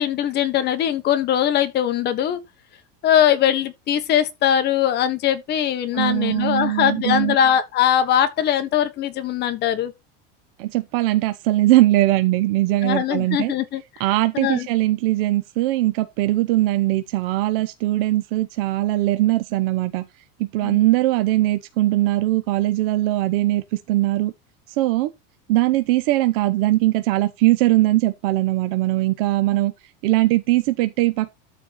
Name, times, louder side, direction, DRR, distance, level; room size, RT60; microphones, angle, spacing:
voice 1, 0.0-2.4 3.0-9.9 12.8-13.8 14.3-14.7 20.6-20.8, left 10 dB, 35° left, 1.4 m, -21 dB
voice 2, 5.9-7.4 10.6-13.5 14.0-20.0 20.4-24.3 24.8-25.1 25.5-29.7 30.0-31.3, right 16 dB, 65° right, 1.0 m, -20 dB
13.0 x 4.5 x 4.2 m
supercardioid pair, 155°, 30 cm